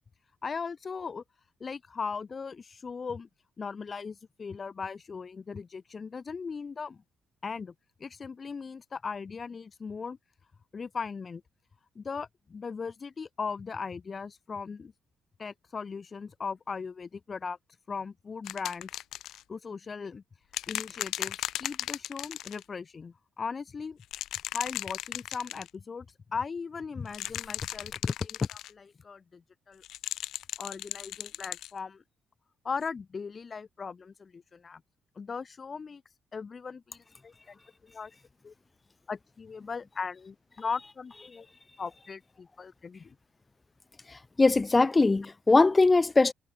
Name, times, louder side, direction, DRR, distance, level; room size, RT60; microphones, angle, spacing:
voice 1, 0.4-1.2 1.6-3.3 3.6-7.0 7.4-7.7 8.0-10.2 10.7-11.4 12.0-14.9 15.4-17.6 17.9-18.9 19.5-20.2 20.7-24.0 24.5-29.8 30.6-32.0 32.6-34.8 35.2-36.0 36.3-38.1 38.4-38.5 39.1-41.5 41.8-43.2, left 5 dB, 40° left, 5.6 m, -38 dB
sound 1, 18.4-19.4 20.5-22.6 24.0-25.7 27.0-28.7 29.8-31.7 32.8-32.9, left 13 dB, 80° left, 6.2 m, -36 dB
voice 2, 44.4-46.3, left 3 dB, 20° left, 3.0 m, -21 dB
cardioid pair, 90°, 0 cm